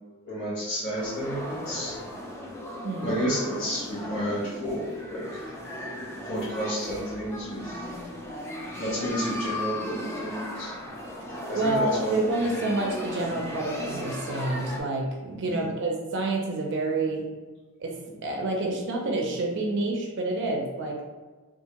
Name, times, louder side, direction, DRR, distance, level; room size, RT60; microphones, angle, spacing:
voice 1, 0.1-2.0 3.0-5.5 6.2-8.0 8.7-10.7 11.5-12.1 15.5-15.7, equal, 55° left, -8 dB, 1.0 m, -31 dB
sound 1, 1.0-14.8, left 1 dB, 10° left, 0.4 m, -36 dB
voice 2, 2.8-3.2 11.6-17.3 17.8-21.0, right 2 dB, 55° right, 0 dB, 0.5 m, -28 dB
3.5 x 2.4 x 2.9 m, 1.3 s
head